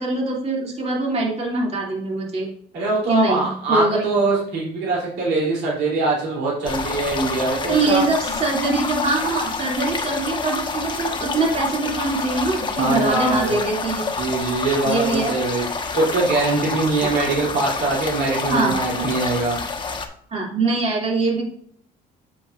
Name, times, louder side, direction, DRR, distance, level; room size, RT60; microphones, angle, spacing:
voice 1, 0.0-2.5 3.1-4.0 7.7-14.0 14.8-15.3 17.0-17.1 18.5-18.7 20.3-21.5, right 3 dB, 40° right, -2 dB, 2.8 m, -23 dB
voice 2, 2.7-8.0 12.8-13.6 14.2-19.6, right 3 dB, 85° right, -5 dB, 3.3 m, -22 dB
sound 1, 6.6-20.1, left 4 dB, 25° left, 1.1 m, -28 dB
8.2 x 7.1 x 2.6 m, 0.63 s
cardioid pair, 110°, 17 cm